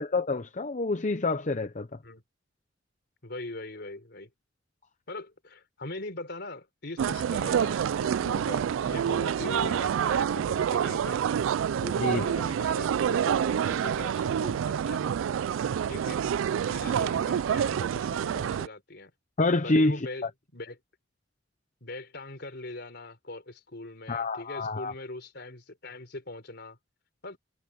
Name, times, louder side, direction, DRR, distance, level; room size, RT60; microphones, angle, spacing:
voice 1, 0.0-1.9 12.0-12.2 19.4-20.3 24.1-24.9, left 2 dB, 40° left, 0.8 m, -27 dB
voice 2, 3.2-4.3 5.1-11.2 11.8-15.2 15.9-16.3 16.6-19.1 19.6-20.3 20.5-20.8 21.8-26.8 27.2-27.4, left 2 dB, 60° left, 4.3 m, -41 dB
sound 1, 7.0-18.7, right 8 dB, 90° right, 0.3 m, -27 dB
head